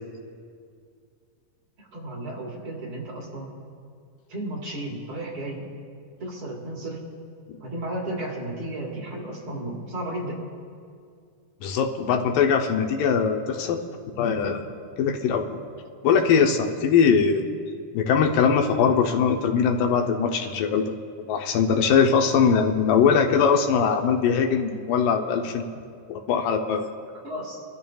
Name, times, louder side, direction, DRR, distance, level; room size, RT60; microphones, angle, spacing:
voice 1, 1.8-3.5 4.3-5.7 6.2-7.0 7.6-10.4 22.1-22.3 27.1-27.6, right 1 dB, 45° right, -3 dB, 2.3 m, -33 dB
voice 2, 11.6-13.8 14.2-14.7 15.0-15.6 16.0-17.5 17.9-20.9 21.3-25.7 26.1-26.8, left 6 dB, 85° left, 3 dB, 2.5 m, -21 dB
24.5 x 12.5 x 2.4 m, 2.3 s
omnidirectional pair, 3.8 m